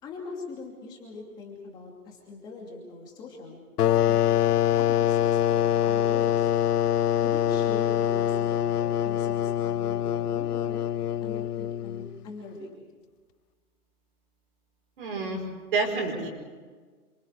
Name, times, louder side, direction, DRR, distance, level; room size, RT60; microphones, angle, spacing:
voice 1, 0.0-3.6 4.7-6.5 7.2-10.8 11.2-12.8, left 3 dB, 10° left, -1 dB, 2.7 m, -41 dB
sound 1, 3.8-12.2, left 11 dB, 90° left, 0.7 m, -24 dB
voice 2, 15.0-15.4 15.7-16.3, right 3 dB, 35° right, 0 dB, 5.5 m, -28 dB
29.0 x 25.5 x 4.9 m, 1.5 s
hypercardioid pair, 180°, 45 cm